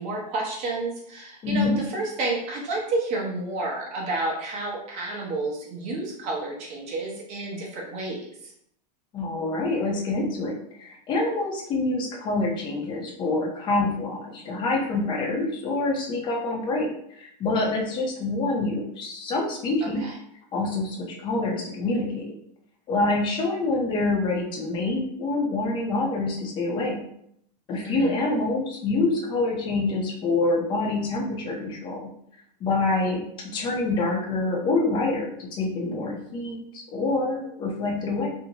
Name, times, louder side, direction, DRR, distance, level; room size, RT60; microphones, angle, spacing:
voice 1, 0.0-8.5 19.8-20.2 27.8-28.2, right 2 dB, 35° right, -2 dB, 0.7 m, -30 dB
voice 2, 1.4-1.8 9.1-20.0 20.5-22.3 22.9-27.0 27.7-32.1 32.6-33.2 33.5-38.3, left 2 dB, 20° left, 0 dB, 0.5 m, -26 dB
2.6 x 2.0 x 2.7 m, 0.70 s
supercardioid pair, 150°, 21 cm